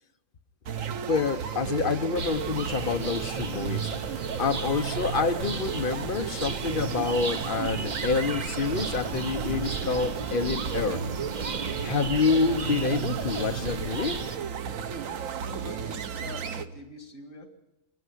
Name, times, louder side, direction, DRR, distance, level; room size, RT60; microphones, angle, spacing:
sound 1, 0.7-16.7, right 7 dB, 90° right, 1.3 m, -34 dB
voice 1, 1.1-11.0 11.8-14.2, left 4 dB, 45° left, 8 dB, 1.1 m, -28 dB
sound 2, 2.2-14.4, right 4 dB, 40° right, 0.9 m, -35 dB
voice 2, 15.5-17.5, left 3 dB, 80° left, 5 dB, 2.6 m, -44 dB
26.0 x 10.5 x 9.8 m, 0.93 s
omnidirectional pair, 1.3 m